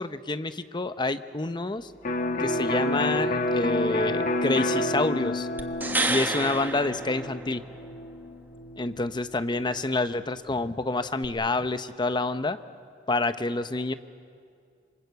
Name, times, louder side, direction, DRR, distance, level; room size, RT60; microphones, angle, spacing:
voice 1, 0.0-1.9 2.4-5.5 6.1-7.6 8.8-12.6 13.1-13.9, left 2 dB, 25° left, 11 dB, 0.8 m, -28 dB
Electric guitar, 2.0-9.7, left 1 dB, 45° left, 1.3 m, -29 dB
sound 1, 5.6-7.9 11.2-11.3, right 2 dB, 10° right, 1.3 m, -30 dB
27.0 x 24.0 x 8.2 m, 2.3 s
head